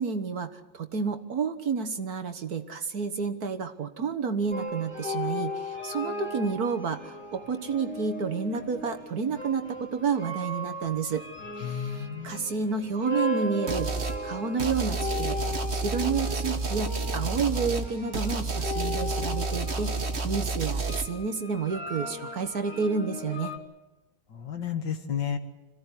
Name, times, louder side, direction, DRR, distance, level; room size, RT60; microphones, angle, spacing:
voice 1, 0.0-11.2 11.6-15.4 15.7-23.5, right 5 dB, 55° right, 7 dB, 1.6 m, -30 dB
sound 1, 4.5-23.6, left 1 dB, 5° left, 3.1 m, -37 dB
voice 2, 11.6-12.5 24.3-25.4, left 8 dB, 65° left, 6 dB, 2.4 m, -32 dB
sound 2, 13.7-14.2 14.6-21.1, right 3 dB, 35° right, 1.6 m, -30 dB
26.5 x 16.5 x 9.8 m, 1.1 s
omnidirectional pair, 2.1 m